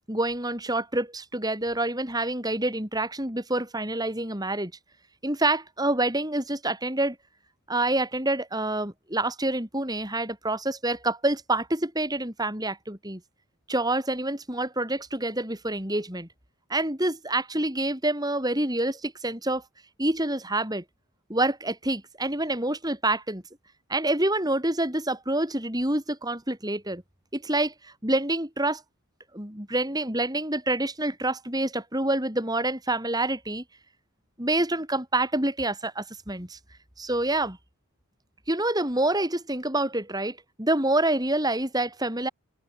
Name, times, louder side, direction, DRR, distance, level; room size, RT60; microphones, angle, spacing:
voice 1, 0.1-4.7 5.2-7.2 7.7-13.2 13.7-16.3 16.7-19.6 20.0-20.8 21.3-23.4 23.9-27.0 27.3-28.8 29.3-33.6 34.4-36.6 37.0-37.6 38.5-42.3, right 2 dB, 15° right, 5.1 m, -27 dB
head